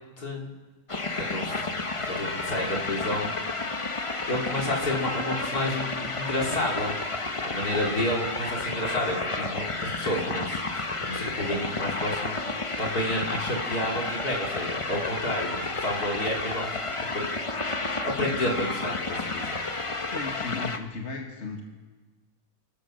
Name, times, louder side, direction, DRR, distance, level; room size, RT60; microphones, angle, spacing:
voice 1, 0.2-0.5 1.1-1.7 2.0-3.3 4.3-7.0 7.4-17.3 17.8-19.6, left 1 dB, 70° left, -1 dB, 3.9 m, -30 dB
sound 1, 0.9-20.8, left 3 dB, 25° left, 1.0 m, -31 dB
voice 2, 20.1-21.6, left 4 dB, 45° left, 1 dB, 2.2 m, -35 dB
29.0 x 14.5 x 6.6 m, 1.3 s
omnidirectional pair, 1.7 m